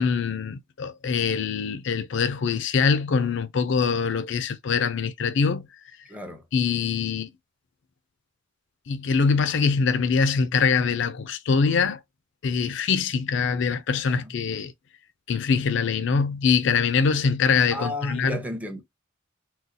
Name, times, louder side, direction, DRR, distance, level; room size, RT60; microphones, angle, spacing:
voice 1, 0.0-5.7 6.5-7.3 8.9-12.0 12.4-14.7 15.3-18.4, left 5 dB, 65° left, 0.4 m, -23 dB
voice 2, 6.1-6.4 17.7-18.8, left 1 dB, 10° right, 0.6 m, -32 dB
3.9 x 2.4 x 2.6 m
head